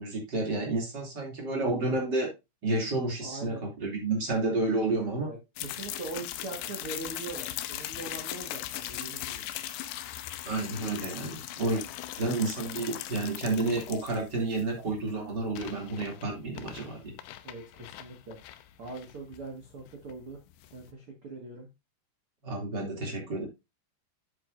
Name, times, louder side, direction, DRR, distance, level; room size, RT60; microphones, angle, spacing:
voice 1, 0.0-2.3 2.6-5.3 10.4-11.8 12.2-17.1 22.4-23.5, right 2 dB, 30° right, 0 dB, 2.5 m, -30 dB
voice 2, 3.2-3.6 5.3-9.4 11.8-11.9 17.4-18.4 18.8-20.4 20.7-21.7, right 3 dB, 85° right, 0 dB, 1.2 m, -42 dB
sound 1, 5.6-20.9, left 13 dB, 85° left, 2.5 m, -40 dB
9.8 x 7.6 x 2.6 m, 0.24 s
omnidirectional pair, 5.6 m